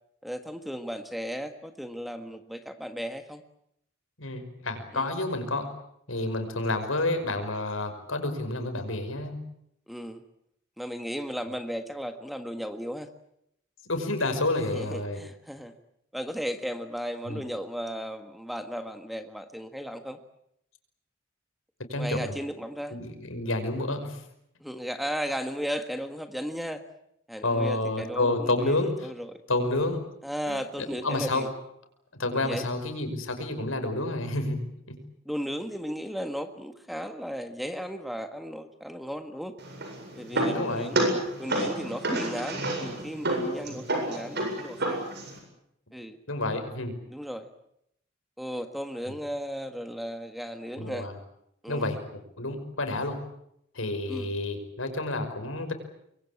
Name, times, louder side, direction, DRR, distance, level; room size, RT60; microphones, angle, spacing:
voice 1, 0.2-3.4 4.9-5.1 9.9-10.2 10.8-13.1 14.6-15.7 16.1-20.2 21.9-23.0 24.6-26.8 27.3-28.8 29.0-29.4 30.2-31.5 32.3-32.7 35.2-39.5 40.1-41.0 41.4-45.0 45.9-46.2 47.1-47.5 48.4-51.1 51.6-51.9 54.1-54.3, equal, ahead, 7 dB, 1.6 m, -35 dB
voice 2, 4.2-5.6 6.1-9.4 13.9-15.2 17.3-17.4 21.9-22.3 22.9-24.2 27.4-29.1 29.5-30.0 30.5-30.6 30.9-31.4 32.1-34.6 34.9-35.0 40.3-40.9 43.7-43.8 46.3-46.9 50.8-51.1 51.7-53.2 53.7-55.7, left 2 dB, 80° left, 7 dB, 5.7 m, -29 dB
sound 1, 39.6-45.4, right 1 dB, 55° right, 7.9 m, -30 dB
25.5 x 23.0 x 8.8 m, 0.75 s
head